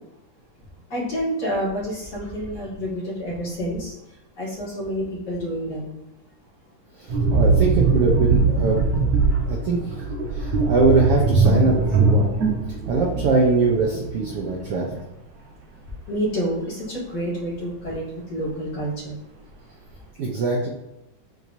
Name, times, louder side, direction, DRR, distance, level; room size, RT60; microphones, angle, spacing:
voice 1, 0.9-3.9 4.4-6.0 12.4-12.5 16.1-19.2, equal, 35° left, -8 dB, 2.5 m, -28 dB
voice 2, 7.0-8.8 9.4-9.8 10.3-12.3 12.9-14.9 20.2-20.7, right 3 dB, 85° right, -3 dB, 1.3 m, -22 dB
sound 1, 7.1-14.5 14.8-15.0, right 4 dB, 65° right, 2.2 m, -21 dB
9.0 x 4.7 x 2.7 m, 0.90 s
omnidirectional pair, 3.8 m